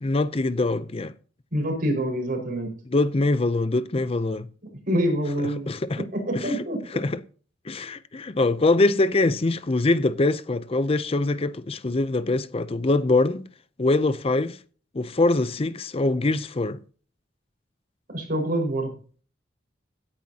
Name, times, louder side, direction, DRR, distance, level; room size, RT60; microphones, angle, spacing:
voice 1, 0.0-1.1 2.9-4.5 5.7-6.1 6.3-6.6 6.9-7.2 7.7-13.4 13.8-14.6 14.9-16.8, left 2 dB, 30° left, 0.5 m, -23 dB
voice 2, 1.5-2.7 4.9-5.7 6.0-6.8 18.1-18.9, right 1 dB, 50° right, 5.2 m, -26 dB
17.0 x 9.9 x 2.8 m
head